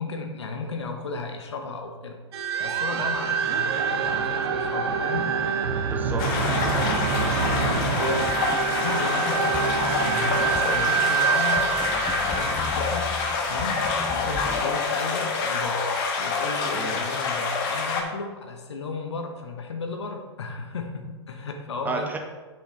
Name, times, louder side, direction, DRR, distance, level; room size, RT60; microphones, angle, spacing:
voice 1, 0.0-2.2 2.6-5.5 7.5-8.4 8.8-9.6 10.0-11.8 12.1-13.2 13.5-15.9 16.2-22.1, left 4 dB, 70° left, 4 dB, 0.8 m, -34 dB
sound 1, 2.3-13.5, right 6 dB, 60° right, 0.8 m, -26 dB
voice 2, 5.9-6.9 14.5-14.6 16.7-17.0 21.8-22.2, right 3 dB, 10° right, 3 dB, 0.9 m, -33 dB
sound 2, 6.2-18.0, left 4 dB, 45° left, 1.1 m, -27 dB
sound 3, 6.5-14.6, left 4 dB, 5° left, 0.4 m, -38 dB
7.8 x 5.7 x 3.1 m, 1.3 s
figure-of-eight pair, 110°, 15 cm